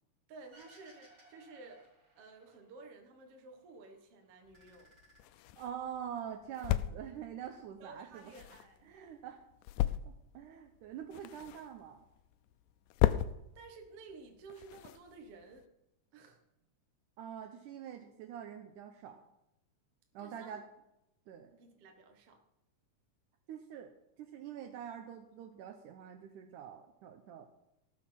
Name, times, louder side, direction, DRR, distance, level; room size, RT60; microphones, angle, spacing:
voice 1, 0.3-1.8 2.1-4.9 7.8-8.9 13.6-15.7 16.1-16.4 20.2-20.6 21.6-22.4, right 3 dB, 55° right, 3 dB, 2.3 m, -53 dB
sound 1, 0.5-2.9 3.2-4.0 4.3-5.9, right 1 dB, 25° right, 2.7 m, -62 dB
sound 2, 4.5-15.7, left 13 dB, 80° left, 2.1 m, -38 dB
voice 2, 5.6-8.2 8.9-9.4 9.8-12.0 17.2-19.2 20.1-20.7 21.3-21.6 23.5-27.5, right 9 dB, 75° right, 6 dB, 2.4 m, -45 dB
18.5 x 6.6 x 5.8 m, 0.85 s
omnidirectional pair, 3.7 m